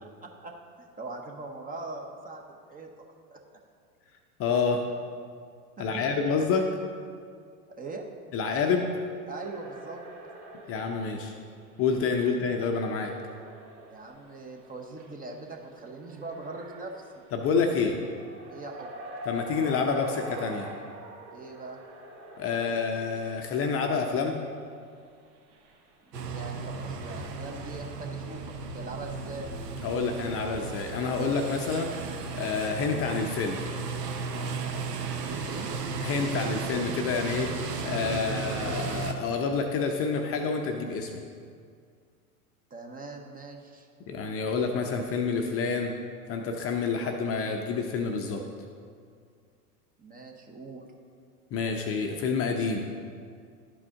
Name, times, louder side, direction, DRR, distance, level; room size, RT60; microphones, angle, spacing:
voice 1, 0.0-2.9 3.3-3.4 5.8-6.2 7.8-8.0 9.3-10.0 13.9-17.2 18.5-18.9 21.3-21.8 26.1-29.5 35.1-35.7 42.7-43.9 50.0-50.8, right 3 dB, 20° right, 2 dB, 0.7 m, -41 dB
voice 2, 4.4-4.8 5.8-6.7 8.3-8.9 10.7-11.3 11.8-13.1 17.3-18.0 19.3-20.7 22.4-24.4 29.8-31.9 32.3-33.6 36.0-37.5 37.8-41.1 44.1-45.9 46.3-48.4 51.5-52.9, left 5 dB, 30° left, 3 dB, 0.6 m, -28 dB
sound 1, 9.3-12.5 12.8-24.1 24.5-24.6 25.3-29.1, equal, 50° right, 1.4 m, -46 dB
sound 2, 26.1-39.1, right 4 dB, 85° right, 0.9 m, -35 dB
11.0 x 4.9 x 3.6 m, 2.2 s
hypercardioid pair, 100°, 47 cm